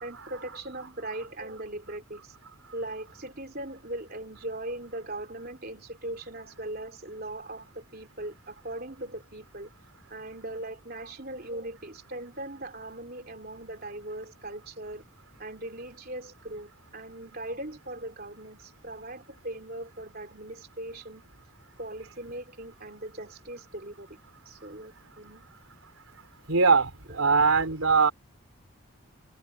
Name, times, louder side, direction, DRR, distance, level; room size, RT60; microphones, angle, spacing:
voice 1, 0.0-2.3 2.7-9.7 10.1-15.0 15.4-21.2 21.8-24.2 24.4-25.5 27.1-27.3, right 1 dB, 45° right, 3.3 m, -39 dB
voice 2, 26.5-28.1, right 4 dB, 75° right, 3.9 m, -21 dB
open air
head